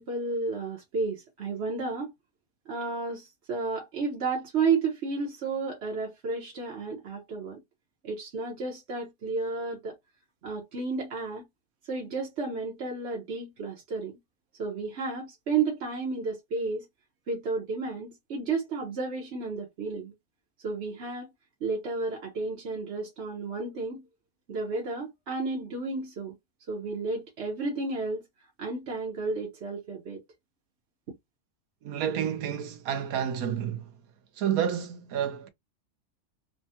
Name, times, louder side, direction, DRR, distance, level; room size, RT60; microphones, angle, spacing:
voice 1, 0.0-2.1 2.7-7.6 8.0-9.9 10.4-11.4 11.8-14.2 14.6-16.8 17.3-20.1 20.6-21.3 21.6-24.0 24.5-26.3 26.7-28.2 28.6-30.2, right 4 dB, 55° right, 1.1 m, -32 dB
voice 2, 31.8-33.9 34.4-35.5, right 9 dB, 90° right, 1.2 m, -30 dB
3.5 x 2.2 x 2.7 m
omnidirectional pair, 1.5 m